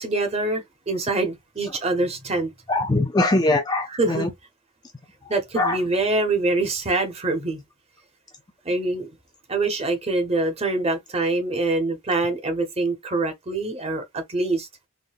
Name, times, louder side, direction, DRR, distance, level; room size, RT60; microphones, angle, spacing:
voice 1, 0.0-2.5 3.9-4.3 5.3-7.6 8.6-9.1 9.5-14.7, right 2 dB, 25° right, 0.8 m, -25 dB
voice 2, 2.7-4.3 5.3-5.8, left 2 dB, 20° left, 0.3 m, -22 dB
3.6 x 2.1 x 2.4 m
head